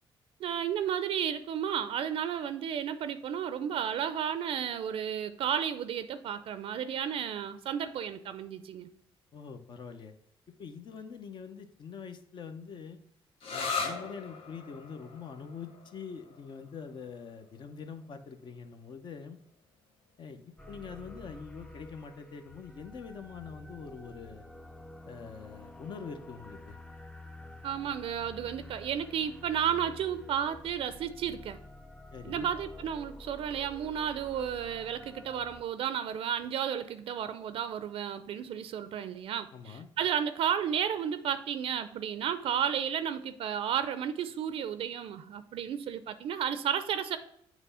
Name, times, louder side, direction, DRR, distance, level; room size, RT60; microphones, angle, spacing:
voice 1, 0.4-8.9 27.6-31.6 32.2-47.2, right 9 dB, 75° right, 12 dB, 0.5 m, -33 dB
voice 2, 9.3-10.1 10.6-13.0 13.5-19.4 20.2-24.5 25.1-26.8 32.1-32.5 39.5-39.9, left 6 dB, 55° left, 7 dB, 0.7 m, -44 dB
sound 1, 13.4-20.8, left 4 dB, 80° left, 1.0 m, -41 dB
sound 2, 20.6-35.6, left 1 dB, 10° left, 0.5 m, -49 dB
7.8 x 3.0 x 5.5 m, 0.73 s
cardioid pair, 115°, 10 cm